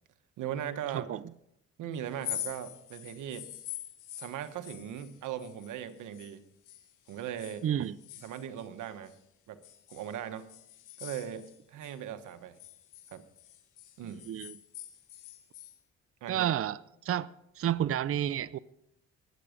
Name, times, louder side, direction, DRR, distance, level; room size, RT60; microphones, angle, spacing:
voice 1, 0.4-1.1 1.8-3.5 4.2-6.4 7.1-7.6 8.2-9.1 9.5-9.6 9.9-10.5 11.0-12.6 13.1-13.2 14.0-14.2 16.2-16.5, right 10 dB, 80° right, 1.3 m, -39 dB
sound 1, 2.1-6.4 6.7-9.2 9.6-12.0 12.3-15.8, left 13 dB, 85° left, 1.6 m, -45 dB
voice 2, 7.6-8.0 14.3-14.5 16.3-16.8 17.0-17.3 17.6-18.6, right 10 dB, 50° right, 0.6 m, -30 dB
20.5 x 8.2 x 5.1 m
cardioid pair, 90°, 30 cm